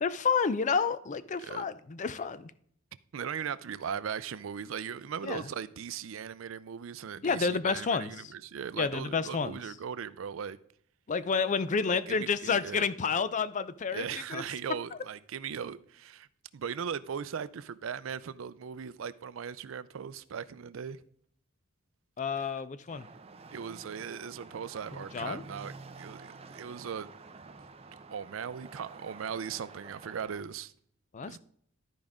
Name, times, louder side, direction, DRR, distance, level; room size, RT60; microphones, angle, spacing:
voice 1, 0.0-2.5 5.2-5.4 7.2-8.3 8.8-9.6 11.1-14.4 22.2-23.1 25.1-25.4 31.1-31.4, left 5 dB, 40° left, 0.4 m, -30 dB
voice 2, 3.1-10.6 11.9-12.9 13.9-16.3 16.5-21.0 23.5-27.1 28.1-30.7 31.2-31.4, right 7 dB, 75° right, 0.4 m, -38 dB
sound 1, 22.9-30.4, right 3 dB, 30° right, 0.6 m, -49 dB
12.5 x 5.1 x 3.6 m
head